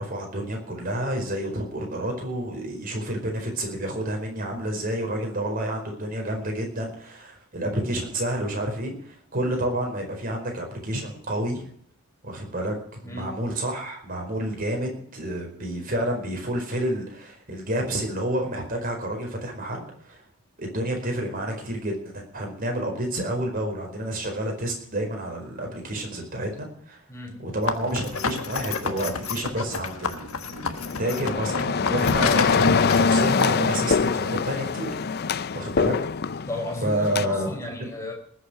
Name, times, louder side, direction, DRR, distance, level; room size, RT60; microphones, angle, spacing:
voice 1, 0.0-11.7 12.2-20.2 20.6-27.0 27.4-30.7 31.0-34.9 35.5-35.9 36.8-37.5, right 1 dB, 45° right, 2 dB, 4.9 m, -29 dB
voice 2, 27.1-27.4 36.5-38.1, left 1 dB, 15° left, 1 dB, 4.5 m, -34 dB
sound 1, 27.6-33.7, left 4 dB, 85° left, 1.4 m, -30 dB
sound 2, 30.6-37.3, left 5 dB, 50° left, 0.5 m, -24 dB
19.5 x 8.3 x 6.3 m, 0.63 s
head